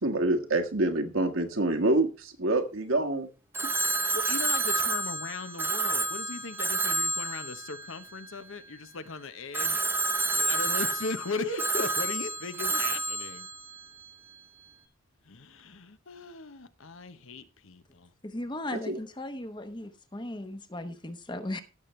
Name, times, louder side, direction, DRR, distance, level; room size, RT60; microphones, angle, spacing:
voice 1, 0.0-3.3 11.4-11.6 18.7-19.0, right 2 dB, 70° right, 1.6 m, -27 dB
Telephone, 3.5-8.8 9.5-14.4, right 2 dB, 10° right, 0.9 m, -30 dB
voice 2, 3.9-9.9 10.3-13.5 15.3-18.1, left 4 dB, 70° left, 1.0 m, -38 dB
voice 3, 18.2-21.6, left 1 dB, 20° left, 1.0 m, -37 dB
16.0 x 6.9 x 3.2 m
head